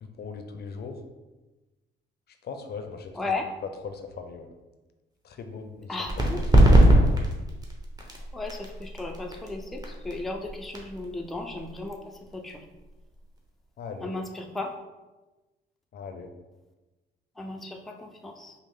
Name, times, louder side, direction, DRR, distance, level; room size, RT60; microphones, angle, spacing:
voice 1, 0.0-1.0 2.4-3.4 3.6-4.5 5.2-6.0 6.7-7.0 13.8-14.1 15.9-16.3, left 5 dB, 55° left, 6 dB, 0.5 m, -39 dB
voice 2, 5.9-6.4 8.3-12.6 14.0-14.8 17.4-18.5, left 2 dB, ahead, 2 dB, 0.4 m, -35 dB
sound 1, 6.0-13.4, right 1 dB, 20° right, 0.9 m, -23 dB
5.2 x 2.0 x 3.5 m, 1.1 s
cardioid pair, 90°, 20 cm